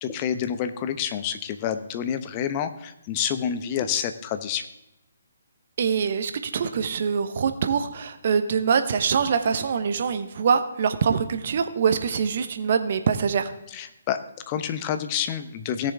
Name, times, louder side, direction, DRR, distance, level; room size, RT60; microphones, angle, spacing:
voice 1, 0.0-4.6 13.7-14.2 14.5-15.9, left 9 dB, 30° left, 9 dB, 0.8 m, -28 dB
voice 2, 5.8-13.5, right 6 dB, 50° right, 9 dB, 0.9 m, -24 dB
17.0 x 6.9 x 3.5 m, 0.89 s
figure-of-eight pair, 140°, 0 cm